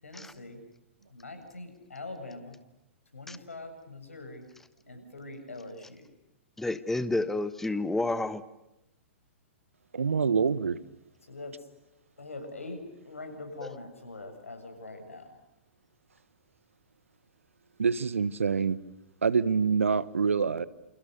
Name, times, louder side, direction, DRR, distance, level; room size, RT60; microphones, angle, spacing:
voice 1, 0.0-0.6 1.1-2.6 3.1-4.4 4.9-6.1 11.2-11.7 12.2-15.4, left 2 dB, 85° left, 7.5 m, -43 dB
voice 2, 6.6-8.4, left 2 dB, 5° left, 1.2 m, -30 dB
voice 3, 9.9-10.8 17.8-18.8 19.2-20.7, right 5 dB, 80° right, 1.3 m, -26 dB
29.5 x 28.5 x 6.7 m
hypercardioid pair, 115°, 7 cm